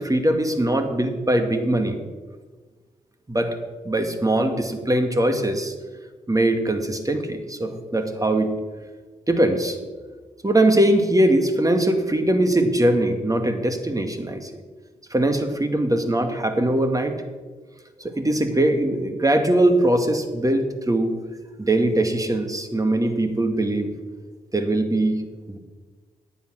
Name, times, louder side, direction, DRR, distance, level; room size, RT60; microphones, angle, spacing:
voice 1, 0.0-2.0 3.3-3.6 3.8-5.7 6.3-8.5 9.3-9.8 10.4-14.5 15.1-17.1 18.0-21.1 21.6-23.9 24.5-25.2 25.5-25.6, right 1 dB, 20° right, 6 dB, 1.9 m, -21 dB
9.5 x 8.6 x 6.2 m, 1.4 s
supercardioid pair, 40°, 16 cm